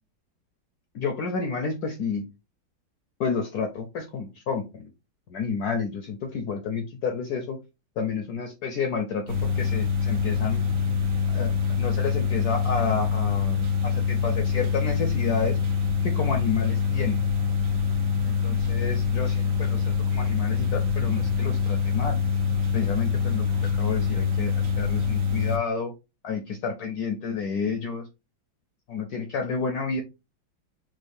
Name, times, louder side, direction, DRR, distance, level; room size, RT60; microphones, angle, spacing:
voice 1, 0.9-2.2 3.2-4.9 5.3-7.6 8.0-10.7 11.3-15.6 16.0-17.2 18.2-22.2 22.7-23.5 23.7-25.9 26.2-28.1 28.9-30.0, left 5 dB, 70° left, 5 dB, 0.9 m, -30 dB
sound 1, 9.3-25.6, left 6 dB, 65° right, 0.8 m, -25 dB
6.2 x 2.1 x 2.6 m, 0.26 s
omnidirectional pair, 2.2 m